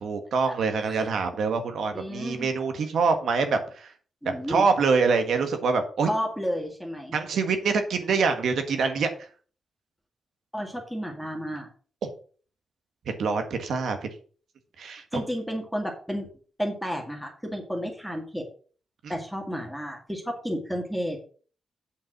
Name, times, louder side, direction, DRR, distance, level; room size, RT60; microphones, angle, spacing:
voice 1, 0.0-3.9 4.5-6.1 7.1-9.1 13.2-14.0 14.8-15.2, right 4 dB, 80° right, 6 dB, 1.7 m, -25 dB
voice 2, 1.9-2.5 4.2-4.7 6.0-7.2 10.5-11.7 15.1-16.3 16.6-18.5 19.1-21.3, equal, ahead, 1 dB, 2.1 m, -32 dB
8.6 x 5.5 x 6.0 m, 0.42 s
wide cardioid pair, 145°, 0 cm